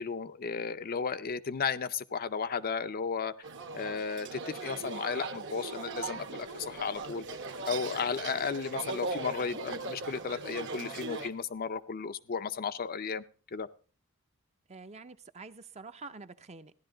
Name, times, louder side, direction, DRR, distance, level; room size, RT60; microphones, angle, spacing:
voice 1, 0.0-3.3 3.7-7.2 7.7-13.2 13.5-13.7, left 5 dB, 40° left, 11 dB, 0.5 m, -34 dB
sound 1, 3.4-11.3, right 3 dB, 55° right, 1.1 m, -39 dB
sound 2, 5.9-11.3, right 3 dB, 80° right, 1.2 m, -53 dB
voice 2, 14.7-16.7, right 4 dB, 30° right, 10 dB, 0.6 m, -47 dB
15.0 x 11.0 x 3.8 m, 0.38 s
head